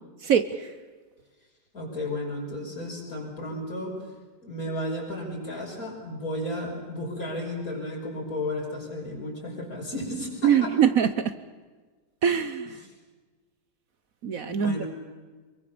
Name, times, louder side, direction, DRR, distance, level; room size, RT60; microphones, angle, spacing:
voice 1, 0.2-0.7 10.4-11.3 12.2-12.8 14.2-14.8, right 8 dB, 60° right, 11 dB, 1.2 m, -23 dB
voice 2, 1.7-4.0 4.4-10.7 14.5-14.9, left 1 dB, 55° left, -1 dB, 6.1 m, -33 dB
24.5 x 23.0 x 6.9 m, 1.4 s
omnidirectional pair, 1.8 m